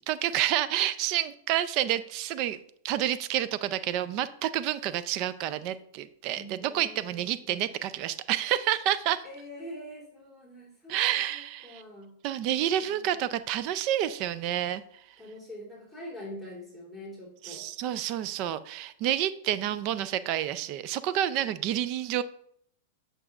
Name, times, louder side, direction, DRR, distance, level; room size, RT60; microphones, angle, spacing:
voice 1, 0.1-2.6 2.8-9.2 10.9-11.8 12.2-14.8 17.4-22.2, right 12 dB, 45° right, 15 dB, 0.5 m, -29 dB
voice 2, 6.3-7.7 9.2-11.0 11.3-12.2 12.5-13.3 15.2-17.7, equal, 10° right, -5 dB, 3.2 m, -45 dB
8.7 x 6.6 x 2.5 m, 0.66 s
hypercardioid pair, 125°, 0 cm